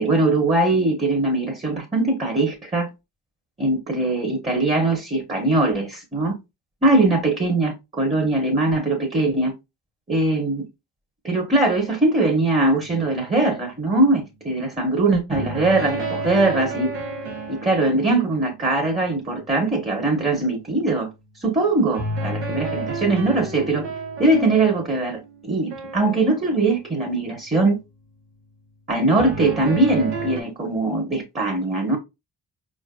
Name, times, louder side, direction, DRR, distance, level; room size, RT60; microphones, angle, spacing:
voice 1, 0.0-2.9 3.6-6.4 6.8-9.5 10.1-10.7 11.2-16.9 17.5-21.1 21.4-23.9 24.2-27.8 28.9-32.0, right 2 dB, 15° right, 1.0 m, -21 dB
sound 1, 12.8-13.2 15.3-19.5 21.9-27.5 29.2-30.4, right 2 dB, 80° right, 1.0 m, -32 dB
4.6 x 2.6 x 2.3 m
supercardioid pair, 50°, 43 cm